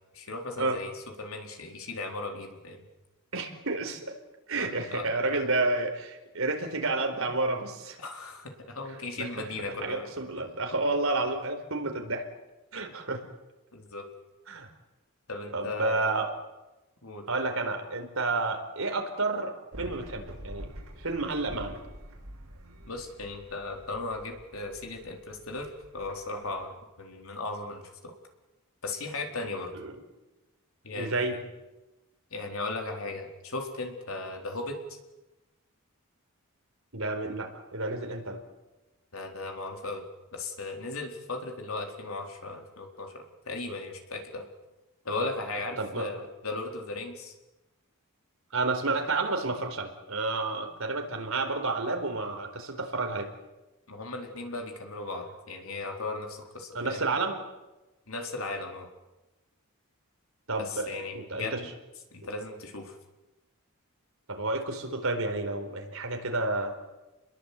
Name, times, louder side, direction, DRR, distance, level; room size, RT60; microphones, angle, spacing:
voice 1, 0.1-2.9 4.5-5.0 5.3-5.4 8.0-10.1 13.7-14.0 15.3-16.1 17.0-17.3 22.9-28.1 28.8-29.7 30.8-31.4 32.3-35.0 39.1-40.0 40.3-44.5 45.0-47.3 53.9-57.0 58.1-58.9 60.6-61.7 62.1-63.0, left 2 dB, 70° left, 3 dB, 4.2 m, -37 dB
voice 2, 3.3-4.2 4.5-8.0 9.2-12.3 12.7-13.2 14.5-14.7 15.5-16.3 17.3-20.7 21.0-21.8 29.7-29.9 30.9-31.4 36.9-38.4 45.8-46.1 48.5-53.3 56.7-57.4 60.5-61.6 64.3-66.8, right 3 dB, 65° right, 5 dB, 4.5 m, -30 dB
sound 1, 19.7-26.7, equal, 85° right, 6.7 m, -46 dB
29.5 x 21.5 x 8.6 m, 1.1 s
head